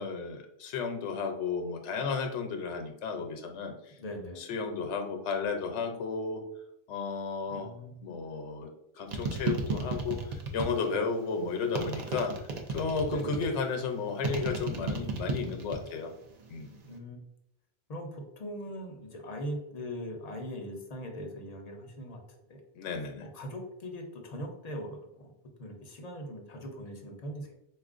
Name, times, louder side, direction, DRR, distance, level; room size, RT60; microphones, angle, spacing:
voice 1, 0.0-3.9 4.4-6.4 6.9-7.7 8.0-8.7 9.0-16.1 16.5-16.7 22.8-23.3, left 4 dB, 85° left, 4 dB, 0.9 m, -33 dB
voice 2, 4.0-4.4 7.5-8.0 13.1-13.4 16.9-17.2 17.9-22.2 22.5-22.6 23.2-25.3 25.6-27.5, equal, 45° left, 2 dB, 0.6 m, -40 dB
sound 1, 9.1-11.0 11.7-13.6 14.2-15.9 16.2-16.8, right 4 dB, 55° right, 0.4 m, -33 dB
4.2 x 2.4 x 2.4 m, 0.81 s
omnidirectional pair, 1.2 m